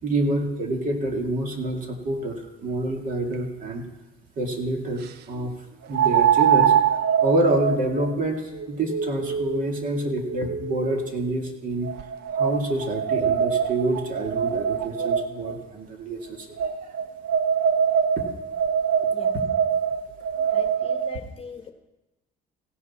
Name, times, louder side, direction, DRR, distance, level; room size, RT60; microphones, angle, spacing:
voice 1, 0.0-3.8 4.4-5.5 5.9-6.7 7.2-11.9 12.3-16.5 16.8-16.9 19.0-19.1 20.4-20.6, right 1 dB, 55° right, 2.3 m, -27 dB
sound 1, 3.3-3.4 5.9-11.1 11.8-15.5 16.6-21.2, right 8 dB, 75° right, 0.7 m, -24 dB
voice 2, 19.1-19.4 20.5-21.7, left 6 dB, 35° left, 1.2 m, -41 dB
16.0 x 11.5 x 4.3 m
cardioid pair, 110°, 17 cm